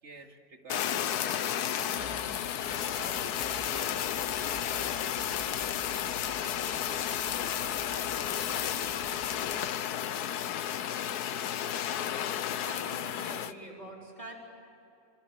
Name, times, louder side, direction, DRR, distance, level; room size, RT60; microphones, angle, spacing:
voice 1, 0.0-2.4 3.0-4.0 4.4-5.7 5.9-7.1 7.4-9.1, right 2 dB, 45° right, 3 dB, 2.6 m, -50 dB
Fire, 0.7-13.5, left 10 dB, 75° left, 1.4 m, -32 dB
sound 1, 1.9-9.6, right 1 dB, 75° right, 4.0 m, -50 dB
voice 2, 12.2-14.3, right 1 dB, 25° left, -2 dB, 4.0 m, -45 dB
27.0 x 26.0 x 8.1 m, 2.9 s
omnidirectional pair, 1.7 m